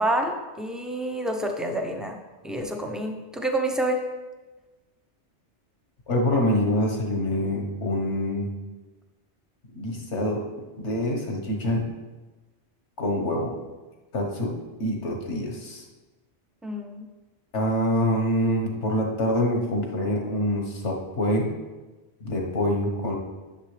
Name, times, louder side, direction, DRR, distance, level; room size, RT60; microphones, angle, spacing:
voice 1, 0.0-2.2 2.4-4.0 16.6-17.1, right 1 dB, ahead, 3 dB, 0.6 m, -28 dB
voice 2, 6.1-8.5 9.7-10.4 10.8-11.8 13.0-13.6 14.1-14.5 14.8-15.8 17.5-21.5 22.2-23.2, left 1 dB, 75° left, 1 dB, 1.6 m, -25 dB
11.0 x 6.6 x 3.3 m, 1.2 s
omnidirectional pair, 1.2 m